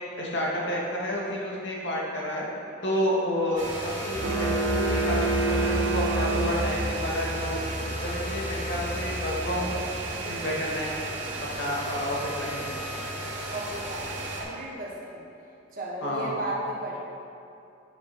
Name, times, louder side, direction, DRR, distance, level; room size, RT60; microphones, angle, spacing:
voice 1, 0.0-2.4 2.8-9.8 10.2-11.0 11.4-12.7 16.0-16.3, equal, 75° left, -5 dB, 2.1 m, -30 dB
sound 1, 3.6-14.4, right 2 dB, 85° right, 2.1 m, -35 dB
sound 2, 4.1-10.1, left 2 dB, 25° left, 0.4 m, -36 dB
sound 3, 4.2-7.2, right 2 dB, 65° right, 1.0 m, -26 dB
voice 2, 13.5-15.2 15.7-17.0, right 1 dB, 50° right, -4 dB, 1.3 m, -34 dB
11.5 x 8.7 x 3.0 m, 2.7 s
head